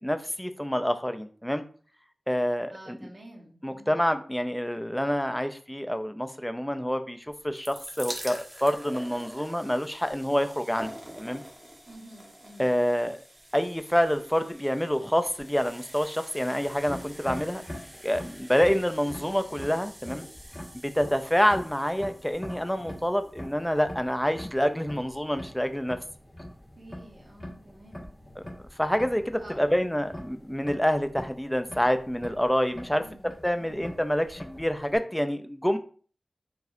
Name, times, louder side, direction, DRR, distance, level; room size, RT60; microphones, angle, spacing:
voice 1, 0.0-1.6 2.3-3.1 3.6-11.4 12.6-13.2 13.5-17.6 18.0-20.3 20.8-26.0 28.4-28.5 28.8-33.0 33.4-35.8, equal, 5° left, 9 dB, 0.5 m, -27 dB
voice 2, 2.7-4.0 11.9-12.7 26.7-28.1 29.4-29.6 32.9-33.9, right 1 dB, 55° right, -3 dB, 1.7 m, -49 dB
sound 1, 7.3-24.3 25.1-25.2 25.4-25.5, right 1 dB, 20° right, 1.3 m, -46 dB
sound 2, 16.6-35.0, equal, 25° left, 1.8 m, -44 dB
4.8 x 3.1 x 2.7 m, 0.43 s
cardioid pair, 50°, 0 cm